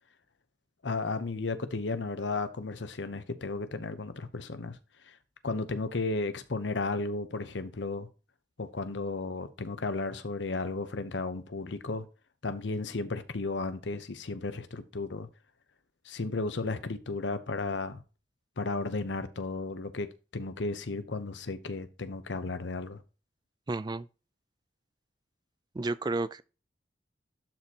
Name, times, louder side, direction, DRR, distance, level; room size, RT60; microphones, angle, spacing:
voice 1, 0.8-4.8 5.4-8.1 8.6-12.0 12.4-15.3 16.1-18.0 18.6-20.1 20.3-23.0, left 3 dB, 85° left, 0.9 m, -34 dB
voice 2, 23.7-24.1 25.7-26.4, right 3 dB, 25° right, 0.3 m, -31 dB
12.0 x 4.3 x 2.9 m
head